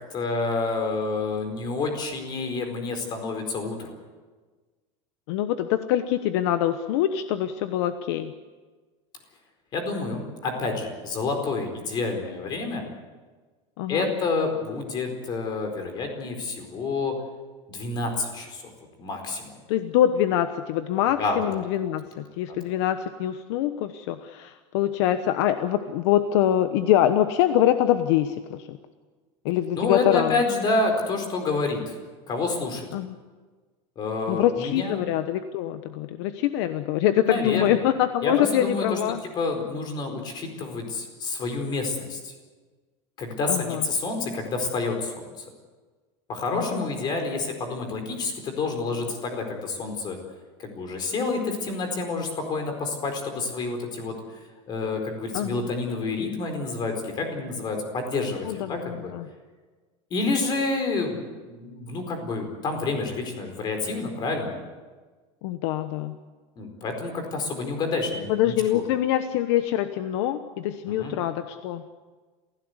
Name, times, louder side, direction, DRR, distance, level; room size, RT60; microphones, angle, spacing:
voice 1, 0.1-3.9 9.7-12.9 13.9-17.2 17.7-18.7 19.0-19.5 21.2-21.4 22.5-22.6 29.7-31.9 32.3-32.9 34.0-35.0 37.2-37.8 38.2-39.0 39.4-42.3 43.2-45.3 46.3-50.2 50.6-54.2 54.7-59.1 60.1-64.5 66.6-68.8 70.9-71.1, left 3 dB, 30° left, 5 dB, 4.5 m, -28 dB
voice 2, 5.3-8.3 13.8-14.1 19.7-28.8 29.4-30.3 32.9-33.1 34.3-39.2 43.5-43.8 46.5-46.8 55.3-55.7 58.4-59.3 65.4-66.2 68.3-71.8, left 11 dB, 65° left, 9 dB, 1.1 m, -24 dB
27.5 x 16.5 x 8.1 m, 1.4 s
supercardioid pair, 170°, 15 cm